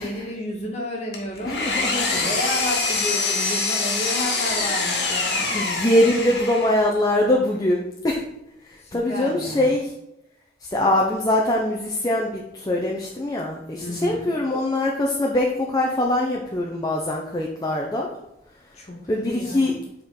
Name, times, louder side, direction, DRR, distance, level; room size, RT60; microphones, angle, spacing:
voice 1, 0.0-5.6 8.8-9.7 13.8-14.4 18.7-19.8, left 1 dB, 35° left, -1 dB, 1.5 m, -32 dB
Engine, 1.1-6.9, left 3 dB, 65° left, 1.4 m, -25 dB
voice 2, 1.5-2.2 4.0-4.2 5.5-8.2 8.7-9.9 10.7-18.1 19.1-19.7, left 1 dB, 20° left, -2 dB, 0.6 m, -23 dB
7.4 x 4.4 x 3.8 m, 0.83 s
head